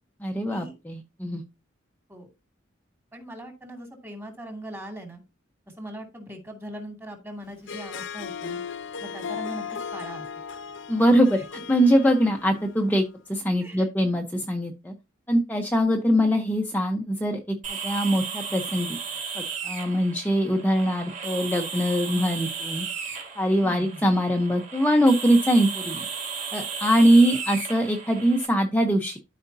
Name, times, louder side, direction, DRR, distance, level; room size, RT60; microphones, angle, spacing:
voice 1, 0.2-1.4 10.9-11.4 11.7-14.9 15.3-19.0 19.3-26.1 26.5-29.2, equal, 10° left, 2 dB, 0.8 m, -22 dB
voice 2, 3.1-5.2 5.7-8.6 9.0-9.6 9.9-10.3 13.6-13.9 23.6-24.0, right 1 dB, 10° right, 3 dB, 2.3 m, -40 dB
Harp, 7.5-13.0, left 6 dB, 65° left, 0.7 m, -36 dB
sound 1, 17.6-28.5, right 5 dB, 40° right, 2.7 m, -35 dB
13.0 x 5.1 x 2.7 m, 0.26 s
head